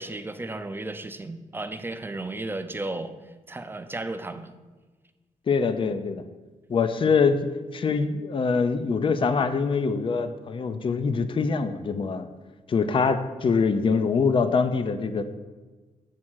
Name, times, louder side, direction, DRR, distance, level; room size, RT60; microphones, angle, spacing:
voice 1, 0.0-3.1 3.5-4.5, right 2 dB, 15° right, 9 dB, 0.5 m, -34 dB
voice 2, 5.5-6.2 6.7-7.5 7.7-12.3 12.7-15.2, left 5 dB, 40° left, 10 dB, 0.5 m, -24 dB
7.4 x 3.7 x 6.2 m, 1.3 s
wide cardioid pair, 110°, 14 cm